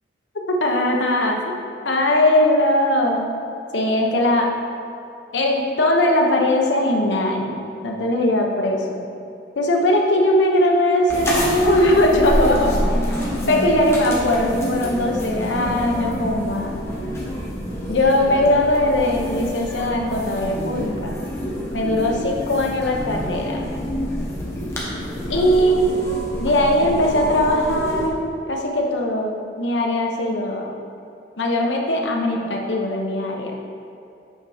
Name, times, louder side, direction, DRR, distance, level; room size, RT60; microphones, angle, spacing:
voice 1, 0.6-1.6 1.8-3.3 3.7-4.5 5.3-9.0 9.6-12.7 13.5-16.8 17.9-21.2 21.7-23.6 25.3-25.9 26.4-30.7 31.4-33.5, left 1 dB, 90° left, 0 dB, 1.0 m, -20 dB
sound 1, 11.1-28.1, equal, 15° left, 1.1 m, -27 dB
7.7 x 4.3 x 4.9 m, 2.6 s
head